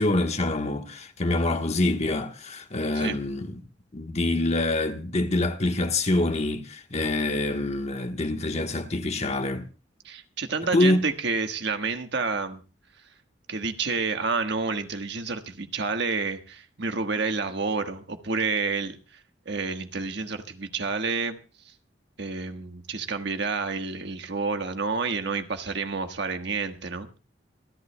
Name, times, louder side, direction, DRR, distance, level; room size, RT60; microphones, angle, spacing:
voice 1, 0.0-3.6 3.9-9.6 10.7-11.0, left 2 dB, 40° left, 1.2 m, -25 dB
voice 2, 10.0-12.6 13.5-19.0 19.4-21.4 22.2-27.1, right 4 dB, 65° right, 1.4 m, -29 dB
27.0 x 11.5 x 2.2 m
head